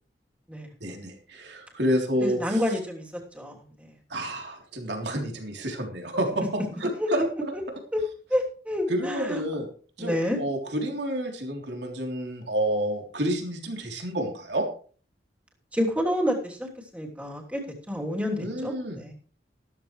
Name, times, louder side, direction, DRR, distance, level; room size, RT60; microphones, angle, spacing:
voice 1, 0.8-2.6 4.1-7.2 8.9-9.6 10.0-14.7 18.4-19.1, right 1 dB, 75° right, 2 dB, 3.4 m, -29 dB
voice 2, 2.2-3.9 6.9-7.2 7.5-7.6 7.9-8.0 8.3-9.4 10.0-10.4 15.7-19.1, equal, 10° right, -1 dB, 3.0 m, -29 dB
14.0 x 14.0 x 3.2 m, 0.42 s
head